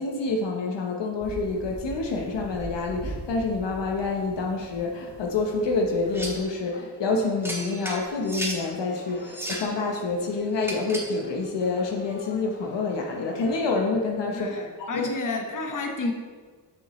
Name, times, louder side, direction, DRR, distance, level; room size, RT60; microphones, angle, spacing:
voice 1, 0.0-15.3, left 3 dB, 80° left, 1 dB, 0.9 m, -27 dB
sound 1, 1.2-6.4, right 2 dB, 75° right, 1.4 m, -41 dB
sound 2, 6.0-13.7, left 3 dB, 25° left, 0.9 m, -47 dB
sound 3, 6.1-6.5 7.4-8.6 9.2-9.7 10.6-11.2, right 1 dB, 5° right, 1.2 m, -34 dB
voice 2, 14.3-16.1, left 3 dB, 45° left, 3 dB, 1.1 m, -31 dB
7.0 x 5.8 x 3.0 m, 1.5 s
cardioid pair, 65°, 42 cm